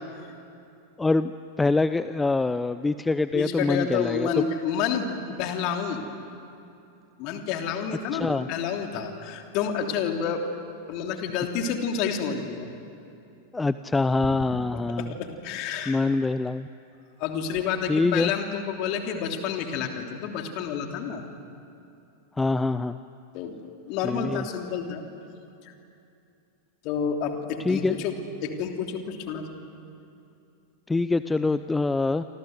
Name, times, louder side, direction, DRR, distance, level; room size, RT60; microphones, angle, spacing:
voice 1, 1.0-1.3 1.6-4.3 8.1-8.5 13.5-15.1 15.9-16.7 17.9-18.3 22.4-23.0 24.0-24.4 27.6-28.0 30.9-32.2, left 3 dB, 10° left, 13 dB, 0.6 m, -24 dB
voice 2, 3.3-6.0 7.2-10.4 10.9-12.7 15.0-16.0 17.2-21.3 23.3-23.5 23.9-25.0 25.6-25.7 26.8-28.1 28.4-29.6, left 7 dB, 40° left, 4 dB, 3.1 m, -29 dB
28.0 x 26.0 x 8.0 m, 2.7 s
figure-of-eight pair, 90°, 0 cm